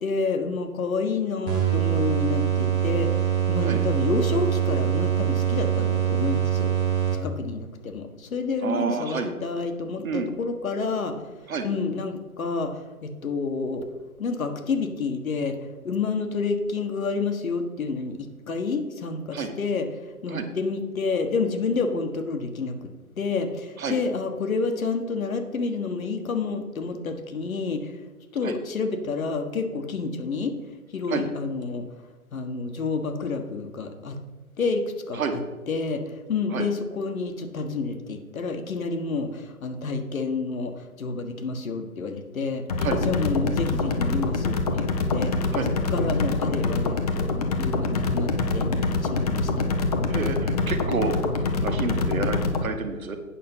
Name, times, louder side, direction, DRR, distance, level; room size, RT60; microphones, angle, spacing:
voice 1, 0.0-6.7 7.2-11.2 11.6-13.9 14.2-15.5 15.8-18.2 18.5-19.9 20.2-22.9 23.2-27.9 28.3-30.5 30.9-31.8 32.3-34.2 34.6-34.8 35.1-35.2 35.7-45.3 45.9-47.3 47.6-48.7 49.0-49.5, left 4 dB, 65° left, 6 dB, 1.4 m, -29 dB
sound 1, 1.5-7.6, right 9 dB, 10° right, 0.9 m, -24 dB
voice 2, 8.6-9.3 10.0-10.3 11.5-11.7 19.3-19.5 20.3-20.5 23.8-24.0 28.4-28.6 31.1-31.3 35.1-35.4 36.5-36.7 42.8-43.0 45.5-45.7 50.1-53.2, right 4 dB, 65° right, 7 dB, 1.5 m, -29 dB
sound 2, 42.7-52.6, left 3 dB, 25° left, 0.7 m, -25 dB
8.7 x 6.2 x 5.6 m, 1.3 s
hypercardioid pair, 150°, 45 cm